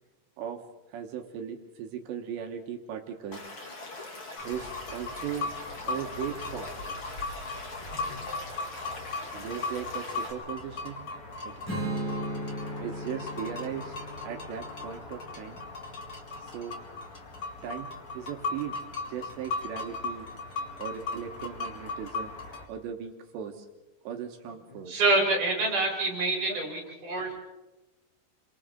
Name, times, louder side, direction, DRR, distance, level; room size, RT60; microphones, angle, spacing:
voice 1, 0.9-3.4 4.4-5.5 5.9-6.7 9.3-11.1 11.4-11.5 12.8-13.9 14.2-15.6 16.4-16.8 17.6-17.9 18.1-18.8 19.1-20.3 20.8-22.3 22.7-23.7 24.0-24.9, right 8 dB, 75° right, 4 dB, 3.2 m, -37 dB
Stream / Liquid, 3.3-10.3, left 2 dB, 30° left, 2.9 m, -42 dB
sound 1, 4.4-22.7, left 3 dB, 80° left, 0.7 m, -38 dB
voice 2, 7.9-8.3 24.5-24.9 26.5-26.7, left 5 dB, 60° left, -1 dB, 4.3 m, -46 dB
Strum, 11.7-17.0, right 1 dB, 5° left, 5.8 m, -38 dB
voice 3, 24.9-27.3, right 2 dB, 45° right, 0 dB, 6.2 m, -26 dB
30.0 x 24.0 x 3.8 m, 1.1 s
omnidirectional pair, 5.3 m